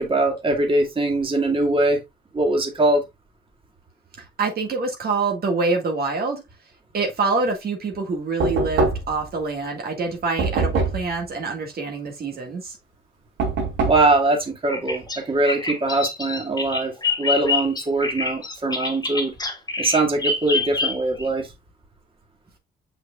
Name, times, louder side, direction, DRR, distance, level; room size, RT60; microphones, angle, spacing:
voice 1, 0.0-2.0 2.3-3.0 13.9-19.3 19.8-21.5, right 2 dB, 25° right, 2.1 m, -22 dB
voice 2, 4.4-6.4 6.9-12.8, right 3 dB, 50° right, 1.9 m, -25 dB
Knock, 8.4-9.3 10.4-11.1 13.4-14.1, right 3 dB, 90° right, 3.0 m, -23 dB
Bird vocalization bird call bird song, 14.7-21.3, left 3 dB, 20° left, 2.0 m, -26 dB
6.4 x 6.1 x 2.4 m
cardioid pair, 90°, 20 cm